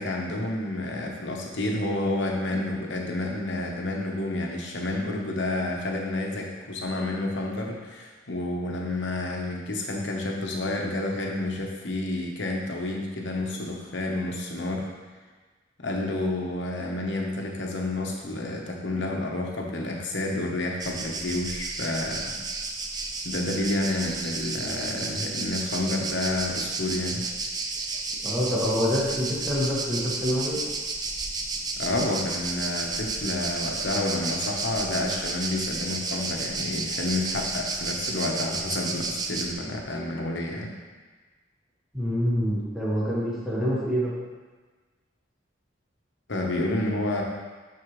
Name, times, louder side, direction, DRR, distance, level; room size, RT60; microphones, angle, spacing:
voice 1, 0.0-14.9 15.8-22.3 23.2-27.2 27.8-27.9 31.8-40.7 46.3-47.2, left 2 dB, 70° left, 0 dB, 1.1 m, -29 dB
sound 1, 20.8-39.5, right 3 dB, 20° right, 0.5 m, -32 dB
voice 2, 28.2-30.6 41.9-44.1, equal, ahead, -9 dB, 1.7 m, -26 dB
11.0 x 4.3 x 3.2 m, 1.4 s
head